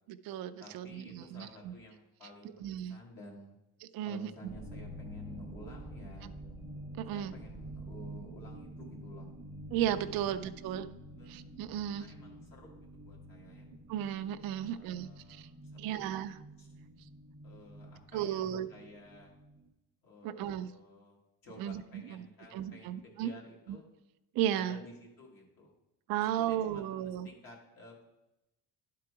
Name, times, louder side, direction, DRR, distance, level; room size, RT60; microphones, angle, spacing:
voice 1, 0.1-1.7 2.6-3.0 3.9-4.3 7.0-7.3 9.7-10.9 11.3-12.1 13.9-15.5 15.8-16.3 18.1-18.7 20.2-20.7 21.6-22.2 22.5-23.3 24.3-24.8 26.1-27.3, right 11 dB, 55° right, 10 dB, 0.5 m, -34 dB
voice 2, 0.6-2.6 2.9-3.6 4.1-6.3 7.1-9.3 10.1-10.4 11.2-11.4 12.0-13.7 14.6-16.1 16.6-16.7 17.4-19.3 20.0-23.8 24.5-25.7 26.2-28.0, left 1 dB, 55° left, -2 dB, 1.7 m, -53 dB
sound 1, 4.5-19.7, right 1 dB, 10° right, 0.7 m, -48 dB
11.5 x 3.8 x 4.6 m, 0.95 s
cardioid pair, 145°, 42 cm